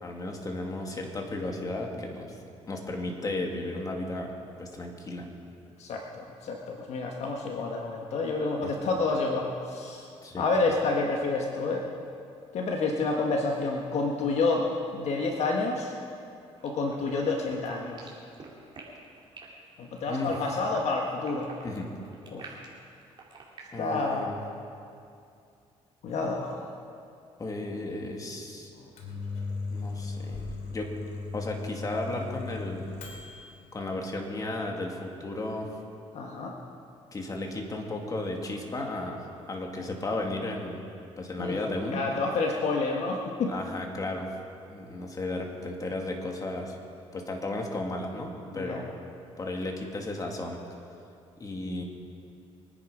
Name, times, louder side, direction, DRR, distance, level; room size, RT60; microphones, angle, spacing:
voice 1, 0.0-2.4 2.7-4.3 4.6-5.3 8.6-8.7 10.2-10.5 20.1-20.4 21.6-21.9 23.7-24.4 27.4-28.7 29.7-30.9 31.3-32.9 33.7-35.7 37.1-39.2 39.5-40.8 41.2-42.0 43.5-44.3 44.7-46.8 47.1-49.0 49.4-50.6 51.4-51.8, left 2 dB, 30° left, 1 dB, 2.5 m, -34 dB
voice 2, 5.8-10.1 10.4-11.9 12.5-14.7 14.9-15.9 16.6-18.1 19.8-21.6 22.3-22.6 23.8-24.3 26.0-26.6 36.1-36.6 41.4-43.5 48.5-48.8, left 3 dB, 65° left, 1 dB, 1.6 m, -29 dB
sound 1, 16.6-23.6, right 5 dB, 40° right, 3.6 m, -47 dB
Microwave oven, 28.7-33.5, left 3 dB, 80° left, 3.1 m, -37 dB
24.0 x 10.5 x 5.1 m, 2.5 s
cardioid pair, 100°, 12 cm